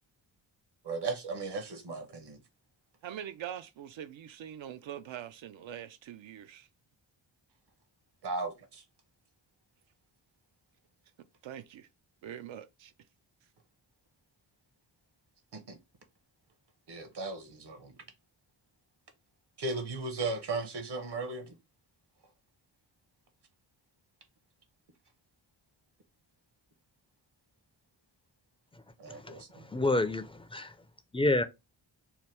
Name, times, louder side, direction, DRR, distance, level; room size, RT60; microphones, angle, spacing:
voice 1, 0.8-2.4 8.2-8.8 15.5-15.8 16.9-17.9 19.6-21.6 29.0-29.7, right 3 dB, 55° right, 0.9 m, -36 dB
voice 2, 3.0-6.7 11.4-11.9 12.2-12.9, right 10 dB, 70° right, 0.5 m, -43 dB
voice 3, 29.1-30.7 31.1-31.4, left 2 dB, 10° left, 0.4 m, -29 dB
2.9 x 2.1 x 3.3 m
cardioid pair, 45°, 49 cm